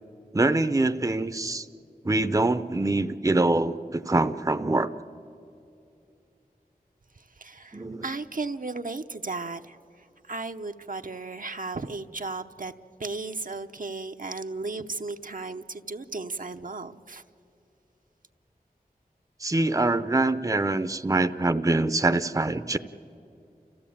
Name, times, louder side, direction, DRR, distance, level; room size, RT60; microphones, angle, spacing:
voice 1, 0.3-1.7 2.0-4.9 7.7-8.1 19.4-22.8, right 2 dB, 20° right, 11 dB, 0.6 m, -24 dB
voice 2, 7.2-12.7 13.0-17.2, right 3 dB, 65° right, 7 dB, 0.8 m, -35 dB
29.5 x 15.0 x 8.6 m, 2.6 s
wide cardioid pair, 50°, 15 cm